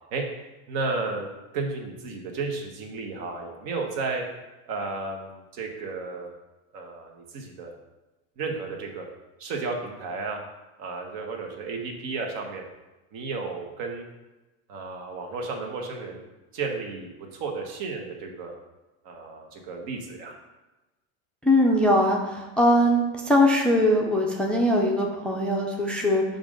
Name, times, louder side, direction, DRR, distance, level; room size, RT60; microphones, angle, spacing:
voice 1, 0.7-4.2 4.7-6.3 6.7-7.7 8.4-9.1 9.4-10.4 10.8-12.6 13.1-14.1 14.7-16.2 16.5-18.5 19.0-20.4, right 3 dB, 60° right, 2 dB, 1.4 m, -33 dB
voice 2, 21.4-26.2, left 1 dB, 5° left, -1 dB, 0.5 m, -21 dB
7.0 x 2.6 x 5.2 m, 1.1 s
supercardioid pair, 125°, 40 cm